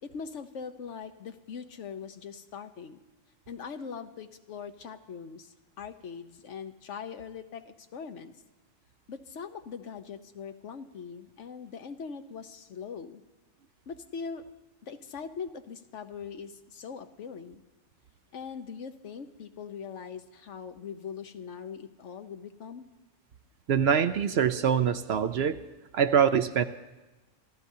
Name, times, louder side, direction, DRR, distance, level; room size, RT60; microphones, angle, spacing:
voice 1, 0.0-3.0 3.5-8.3 9.1-13.2 13.9-14.5 14.8-17.6 18.3-22.9, left 6 dB, 75° left, 8 dB, 1.2 m, -41 dB
voice 2, 23.7-25.6 25.9-26.7, right 8 dB, 60° right, 10 dB, 0.8 m, -24 dB
26.5 x 14.5 x 2.7 m, 1.2 s
omnidirectional pair, 1.3 m